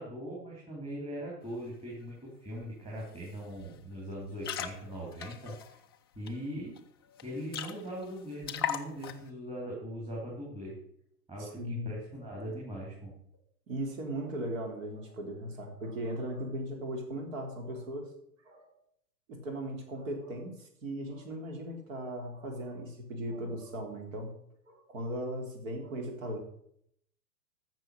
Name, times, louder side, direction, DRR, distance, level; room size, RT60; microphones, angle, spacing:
voice 1, 0.0-5.7 6.2-6.8 7.2-10.7 11.3-13.1, equal, 10° right, -5 dB, 3.9 m, -40 dB
sound 1, 2.6-2.7 3.0-3.3 3.6-3.8 4.2-6.3 6.8-6.9 7.1-7.2 7.5-8.1 8.4-9.3, left 9 dB, 15° left, 0.4 m, -38 dB
voice 2, 11.4-11.9 13.7-18.1 18.5-18.7 19.4-24.3 24.7-26.4, right 1 dB, 50° right, 3 dB, 3.8 m, -38 dB
14.5 x 6.3 x 6.6 m, 0.70 s
figure-of-eight pair, 110°, 49 cm